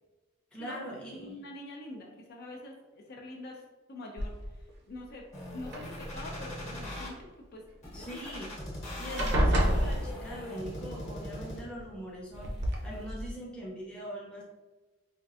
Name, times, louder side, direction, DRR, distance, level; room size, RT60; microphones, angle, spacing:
voice 1, 0.5-1.3 7.9-8.5 9.0-12.5 12.8-14.4, equal, 5° left, -5 dB, 0.7 m, -42 dB
voice 2, 1.2-3.6 3.9-4.3 4.9-5.2 5.5-7.2 7.5-7.6 7.9-8.3 8.6-8.7, left 2 dB, 50° left, 0 dB, 0.5 m, -44 dB
sound 1, 4.2-4.7 5.6-6.4 8.2-8.3 8.6-8.8 9.2-10.6 11.8-11.9 12.4-12.8, equal, 55° right, 0.6 m, -28 dB
sound 2, 5.3-7.1 7.8-11.8 12.3-13.3, left 1 dB, 35° left, 1.0 m, -41 dB
4.3 x 2.5 x 2.4 m, 1.2 s
head